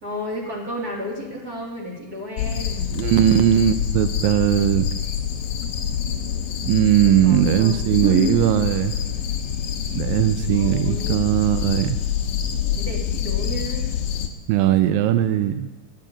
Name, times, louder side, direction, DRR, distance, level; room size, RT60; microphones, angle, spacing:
voice 1, 0.0-2.9 7.0-8.4 10.5-11.3 12.8-13.9, equal, 45° right, -1 dB, 1.3 m, -31 dB
sound 1, 2.4-14.3, left 8 dB, 85° left, 1.6 m, -26 dB
voice 2, 2.9-4.9 6.6-8.9 10.0-12.0 14.5-15.7, right 11 dB, 90° right, 10 dB, 2.0 m, -19 dB
12.5 x 6.5 x 8.8 m, 1.1 s
omnidirectional pair, 4.8 m